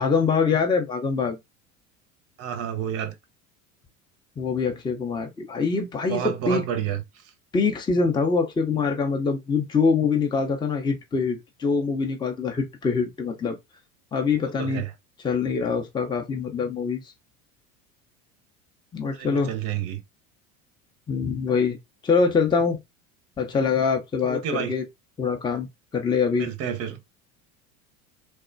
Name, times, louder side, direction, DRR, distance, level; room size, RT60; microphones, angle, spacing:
voice 1, 0.0-1.4 4.4-6.6 7.5-13.6 14.1-14.8 15.2-17.1 18.9-19.5 21.1-21.8 22.0-22.8 23.4-24.8 25.2-25.7 25.9-26.5, left 5 dB, 10° left, 0.6 m, -24 dB
voice 2, 2.4-3.2 6.1-7.3 14.4-14.9 19.0-20.0 24.2-24.7 26.3-27.0, right 9 dB, 35° right, 0.6 m, -30 dB
3.1 x 2.1 x 2.5 m
figure-of-eight pair, 75°, 42 cm